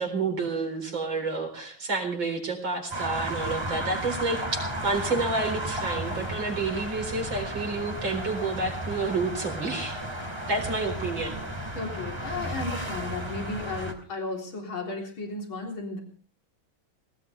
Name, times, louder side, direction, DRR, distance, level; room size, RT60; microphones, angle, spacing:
voice 1, 0.0-10.0 10.5-11.4, right 3 dB, 65° right, 3 dB, 4.9 m, -29 dB
sound 1, 2.9-13.9, right 1 dB, 10° right, 2.8 m, -33 dB
voice 2, 11.7-16.0, left 3 dB, 75° left, 1 dB, 4.4 m, -34 dB
20.5 x 19.0 x 3.4 m, 0.44 s
omnidirectional pair, 2.3 m